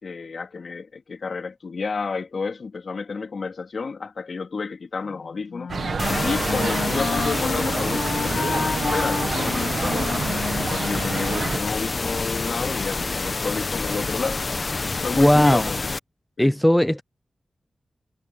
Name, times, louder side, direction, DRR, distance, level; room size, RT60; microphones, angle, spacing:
voice 1, 0.0-5.7 6.2-10.3 10.6-14.6 15.0-15.8 16.4-16.5, left 4 dB, 60° left, 3.3 m, -30 dB
Wind instrument woodwind instrument, 5.0-12.2, left 5 dB, 85° left, 3.4 m, -32 dB
sound 1, 5.7-11.6, right 5 dB, 70° right, 1.2 m, -28 dB
sound 2, 6.0-16.0, left 3 dB, 45° left, 1.0 m, -28 dB
voice 2, 15.2-15.7 16.4-17.0, left 1 dB, 5° left, 0.6 m, -17 dB
wide cardioid pair, 90°, 0 cm